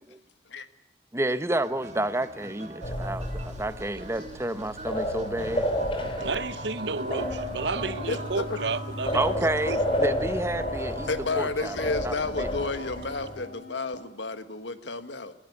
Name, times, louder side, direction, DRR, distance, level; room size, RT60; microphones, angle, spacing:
voice 1, 1.1-5.7 6.2-6.3 9.1-11.1 11.3-11.8 12.0-12.5, right 1 dB, 15° right, 0.9 m, -30 dB
sound 1, 1.5-13.3, right 2 dB, 40° right, 1.9 m, -43 dB
sound 2, 2.8-13.5, equal, 30° left, 3.0 m, -32 dB
voice 2, 6.2-9.8, right 4 dB, 65° right, 0.9 m, -32 dB
sound 3, 7.0-14.0, left 3 dB, 55° left, 4.5 m, -43 dB
voice 3, 8.1-8.6 11.0-15.3, left 3 dB, 75° left, 1.5 m, -31 dB
20.5 x 15.5 x 9.7 m
head